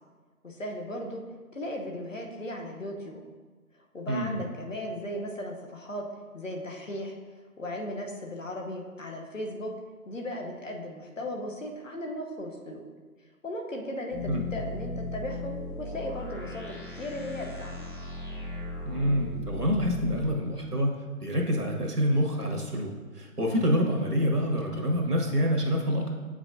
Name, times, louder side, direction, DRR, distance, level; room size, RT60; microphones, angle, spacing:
voice 1, 0.4-1.3 1.5-3.2 3.9-6.1 6.3-7.2 7.6-9.7 10.1-12.8 13.4-15.5 15.8-17.8, left 1 dB, 55° left, 1 dB, 0.9 m, -36 dB
voice 2, 4.1-4.4 14.3-14.5 18.8-20.9 21.2-26.1, equal, 85° right, 1 dB, 1.4 m, -27 dB
sound 1, 14.1-20.3, left 2 dB, 35° left, 1.2 m, -37 dB
7.9 x 5.0 x 2.6 m, 1.4 s
figure-of-eight pair, 155°, 45 cm